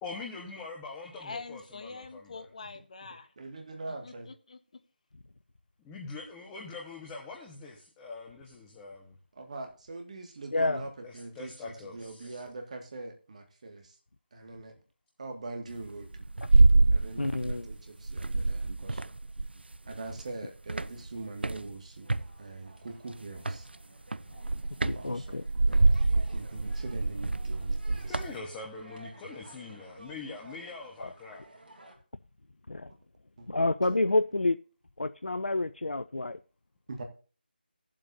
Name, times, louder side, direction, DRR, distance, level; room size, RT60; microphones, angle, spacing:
voice 1, 0.0-2.4 5.8-9.2 11.0-12.4 28.1-31.4, left 3 dB, 10° left, 1.2 m, -43 dB
voice 2, 1.2-3.3 4.0-4.8, left 4 dB, 45° left, 1.0 m, -44 dB
voice 3, 3.4-4.3 9.4-14.0 14.3-14.7 15.2-16.1 16.9-19.1 19.9-22.1 22.4-23.7 24.9-25.4 25.7-28.3 33.4-33.5 33.9-34.0 36.9-37.0, right 3 dB, 45° right, 2.0 m, -42 dB
voice 4, 10.5-10.8 17.2-17.7 24.8-25.4 31.0-31.1 32.7-32.9 33.5-34.6 35.0-36.4, left 2 dB, 85° left, 0.5 m, -28 dB
sound 1, 15.7-17.8 18.0-20.3 20.7-22.3 23.4-23.7 24.1-28.3, right 2 dB, 85° right, 0.4 m, -26 dB
sound 2, 22.0-31.9, right 1 dB, 65° right, 3.0 m, -54 dB
19.5 x 7.6 x 2.7 m
figure-of-eight pair, 160°, 5 cm